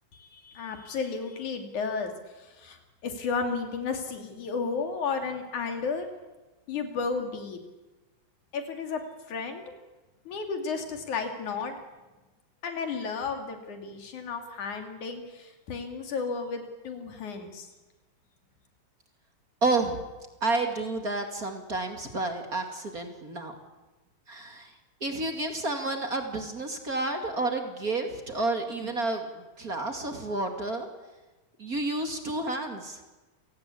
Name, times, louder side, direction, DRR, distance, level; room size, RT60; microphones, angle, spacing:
voice 1, 0.1-2.1 2.4-6.1 6.7-7.6 8.5-9.0 9.3-9.6 10.3-11.7 12.6-17.7, left 5 dB, 85° left, 5 dB, 4.1 m, -33 dB
voice 2, 19.6-20.0 20.4-23.5 24.3-24.7 25.0-30.9 31.6-33.0, right 2 dB, 30° right, 5 dB, 2.6 m, -30 dB
29.0 x 18.0 x 8.5 m, 1.1 s
omnidirectional pair, 3.4 m